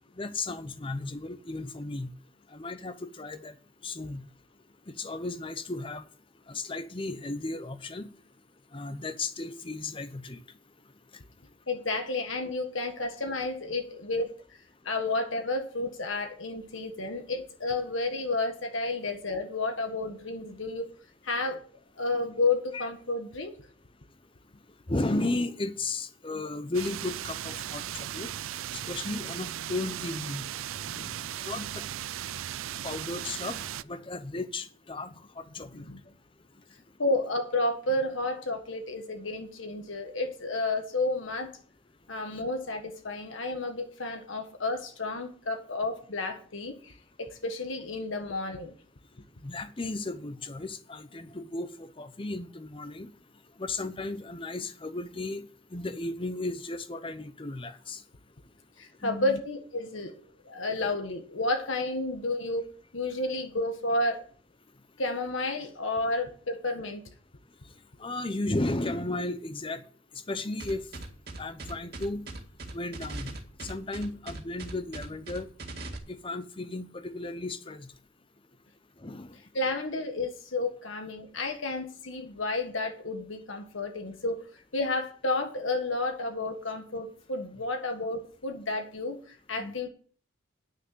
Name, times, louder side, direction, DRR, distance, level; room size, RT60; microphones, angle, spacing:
voice 1, 0.2-2.1 2.5-3.5 3.8-4.2 4.9-6.0 6.5-8.1 8.7-10.4 22.7-22.9 24.9-28.3 28.7-30.5 31.4-31.8 32.8-33.6 33.8-35.8 49.4-53.1 53.6-55.5 55.7-58.0 59.0-59.4 68.0-69.8 70.3-70.8 71.4-72.3 72.7-73.3 73.6-75.5 76.1-77.9 79.0-79.3 89.6-89.8, left 2 dB, 25° left, 0.8 m, -34 dB
voice 2, 11.7-14.3 14.8-20.8 21.2-21.6 22.0-23.5 30.8-31.3 35.7-36.0 37.0-41.5 42.1-48.7 58.8-60.1 60.4-62.7 62.9-64.2 65.0-67.0 79.5-84.4 84.7-89.9, left 2 dB, 70° left, 1.6 m, -31 dB
sound 1, 26.7-33.8, right 11 dB, 75° right, 0.4 m, -37 dB
sound 2, 70.6-76.0, right 2 dB, 50° right, 2.0 m, -39 dB
9.7 x 6.6 x 7.5 m
head